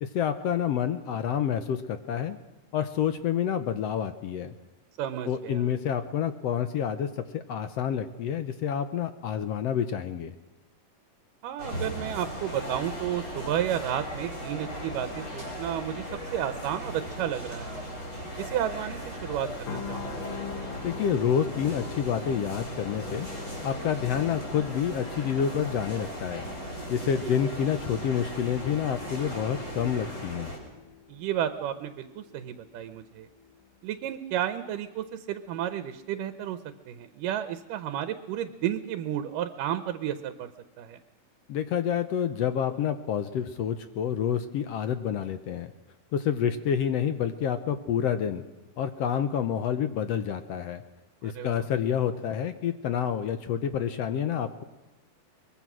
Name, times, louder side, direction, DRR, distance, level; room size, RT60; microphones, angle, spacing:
voice 1, 0.0-2.4 2.7-4.5 5.3-10.3 20.8-23.3 23.6-26.5 26.9-30.5 41.5-45.7 46.1-48.4 48.8-50.8 51.2-54.6, left 8 dB, 70° left, 10 dB, 1.6 m, -28 dB
voice 2, 5.0-5.7 11.4-16.1 16.3-17.8 18.4-20.3 27.2-27.4 31.1-33.3 33.8-36.6 36.9-40.5 40.8-41.0 51.2-51.7, right 10 dB, 85° right, 10 dB, 2.5 m, -32 dB
sound 1, 11.6-30.6, equal, 20° left, 5.6 m, -38 dB
sound 2, 19.7-33.7 34.0-34.2, left 8 dB, 90° left, 3.1 m, -45 dB
23.0 x 22.0 x 6.2 m, 1.1 s
omnidirectional pair, 3.7 m